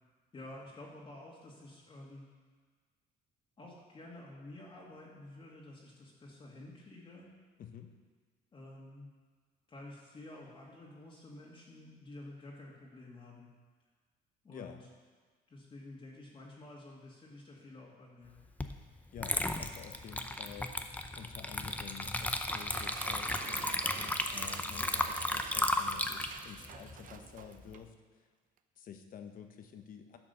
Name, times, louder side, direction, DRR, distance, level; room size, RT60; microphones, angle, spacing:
voice 1, 0.3-2.3 3.6-7.3 8.5-9.1 9.7-13.5 14.4-14.8 15.5-18.4 26.6-26.8, left 2 dB, 30° left, -5 dB, 2.0 m, -50 dB
voice 2, 7.6-7.9 14.5-14.8 19.1-20.8 21.1-28.3 28.8-30.2, left 8 dB, 55° left, 6 dB, 1.1 m, -50 dB
Water / Liquid, 18.6-18.8 19.2-27.7, left 1 dB, 10° left, 0.6 m, -35 dB
sound 1, 22.3-27.9, right 8 dB, 50° right, 0.7 m, -49 dB
11.0 x 5.9 x 6.9 m, 1.5 s
cardioid pair, 110°, 17 cm